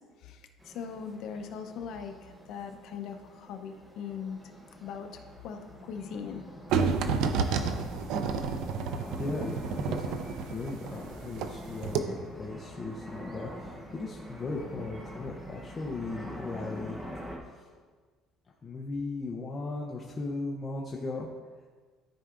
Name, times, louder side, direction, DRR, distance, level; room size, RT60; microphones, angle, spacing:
voice 1, 0.2-4.4 4.8-6.4 7.0-7.1, left 6 dB, 60° left, 6 dB, 0.7 m, -40 dB
sound 1, 0.6-17.4, equal, 10° right, 1.1 m, -45 dB
sound 2, 6.7-11.6 11.8-12.0, right 5 dB, 70° right, 0.5 m, -29 dB
voice 2, 9.2-9.9 10.4-17.7 18.6-21.3, left 3 dB, 25° left, -3 dB, 0.7 m, -37 dB
13.0 x 4.6 x 2.5 m, 1.5 s
cardioid pair, 140°, 0 cm